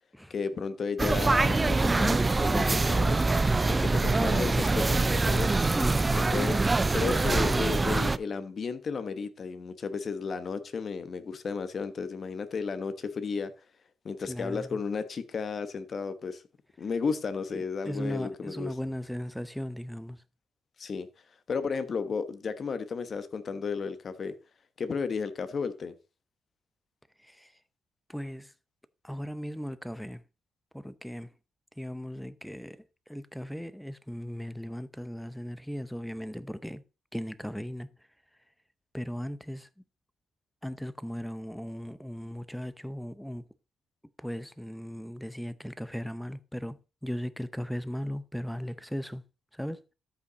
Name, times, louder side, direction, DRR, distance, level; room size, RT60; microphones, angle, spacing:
voice 1, 0.3-3.2 3.7-5.5 6.1-6.6 6.9-13.5 14.0-16.4 16.8-18.7 20.8-21.1 21.5-24.3 24.8-25.9, left 5 dB, 45° left, 1.2 m, -33 dB
sound 1, 1.0-8.2, right 3 dB, 20° right, 0.4 m, -24 dB
voice 2, 5.8-6.7 14.3-14.8 17.5-20.2 27.2-27.5 28.1-28.5 29.0-30.2 30.7-31.3 31.8-32.8 33.1-36.8 37.1-37.9 38.9-39.7 40.6-43.4 44.2-49.2 49.5-49.8, equal, ahead, 0.8 m, -37 dB
13.0 x 5.7 x 4.0 m
cardioid pair, 90°, 0 cm